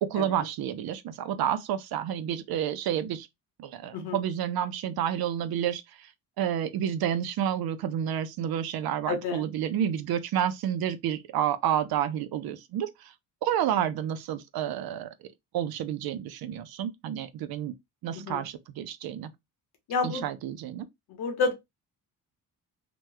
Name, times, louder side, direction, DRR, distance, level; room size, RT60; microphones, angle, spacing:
voice 1, 0.0-3.3 3.6-5.8 6.4-13.1 13.4-15.1 15.5-17.7 18.0-19.3 20.0-20.9, right 10 dB, 70° right, 0.5 m, -30 dB
voice 2, 9.1-9.4 18.1-18.4 19.9-20.2 21.1-21.5, left 4 dB, 80° left, 1.2 m, -30 dB
2.9 x 2.2 x 3.3 m
cardioid pair, 150°, 39 cm